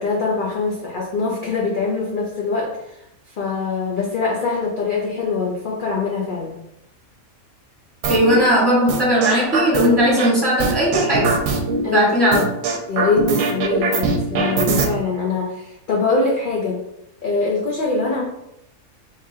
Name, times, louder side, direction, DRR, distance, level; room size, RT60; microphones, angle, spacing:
voice 1, 0.0-3.0 3.3-6.6 11.8-12.4 12.9-16.8 17.2-18.2, left 4 dB, 55° left, -2 dB, 0.6 m, -23 dB
sound 1, 8.0-8.4 8.9-10.3 10.6-11.8 12.3-14.9, right 4 dB, 75° right, 1.0 m, -21 dB
voice 2, 8.1-11.3 11.8-12.4, equal, 20° right, -7 dB, 1.1 m, -17 dB
3.5 x 3.3 x 2.7 m, 0.83 s
omnidirectional pair, 1.5 m